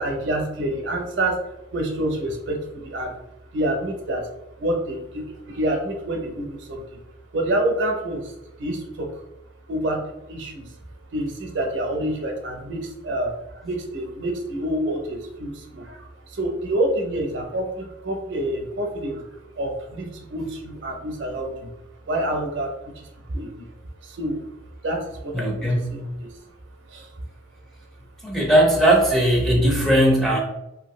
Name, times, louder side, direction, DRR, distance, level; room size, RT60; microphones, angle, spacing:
voice 1, 0.0-1.4 1.7-3.2 3.5-4.3 4.6-6.8 7.3-8.3 8.6-9.2 9.7-10.7 11.1-21.7 22.1-23.6 24.0-24.5 24.8-26.3 26.9-27.1, right 1 dB, 65° right, 2 dB, 0.6 m, -27 dB
voice 2, 25.3-25.9 28.2-30.4, right 1 dB, ahead, -3 dB, 0.4 m, -18 dB
2.8 x 2.5 x 3.0 m, 0.88 s
head